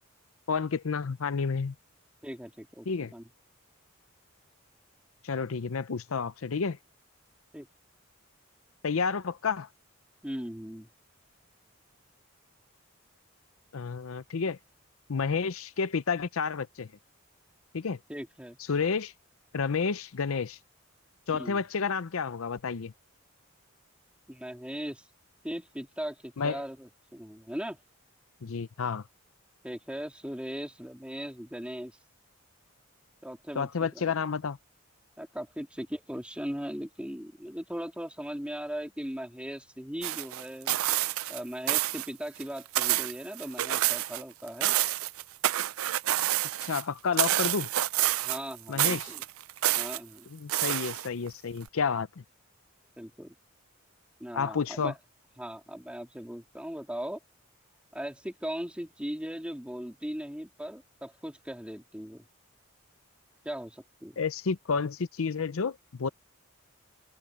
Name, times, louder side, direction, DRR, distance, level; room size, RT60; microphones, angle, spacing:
voice 1, 0.5-1.7 2.9-3.1 5.2-6.8 8.8-9.7 13.7-14.6 15.1-16.9 17.7-18.0 18.7-19.1 19.5-20.6 21.3-22.9 26.4-26.6 28.4-29.0 33.5-34.6 46.6-47.7 48.7-49.1 50.3-52.1 54.3-54.9 64.2-66.1, left 5 dB, 80° left, 0.6 m, -30 dB
voice 2, 2.2-3.2 7.5-7.7 10.2-10.9 18.1-18.6 21.3-21.6 24.3-25.1 25.4-27.8 29.6-32.0 33.2-34.1 35.2-40.8 41.3-44.8 48.2-49.2 49.7-50.3 53.0-53.3 54.2-54.9 55.4-57.2 57.9-62.3 63.4-64.2, equal, 5° right, 2.9 m, -38 dB
sound 1, 40.0-41.4 41.7-42.1 42.4-44.2 44.5-46.8 47.2-48.5 48.8-50.0 50.5-51.3 51.7-51.8, right 14 dB, 85° right, 0.5 m, -28 dB
head